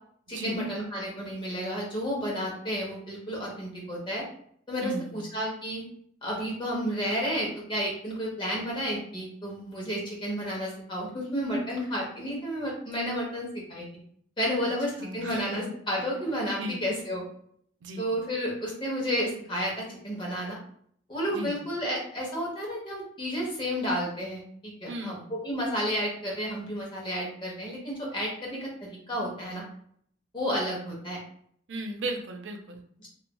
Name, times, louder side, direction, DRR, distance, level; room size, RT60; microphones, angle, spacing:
voice 1, 0.3-4.3 4.7-5.8 6.2-13.9 14.4-17.2 18.0-20.6 21.1-29.6 30.3-31.2 33.0-33.1, equal, 25° left, -3 dB, 0.9 m, -31 dB
voice 2, 4.8-5.2 15.0-15.7 16.6-16.8 17.8-18.1 21.3-21.6 24.9-25.3 31.7-32.8, right 1 dB, 75° right, 3 dB, 0.5 m, -36 dB
3.0 x 2.5 x 2.2 m, 0.65 s
head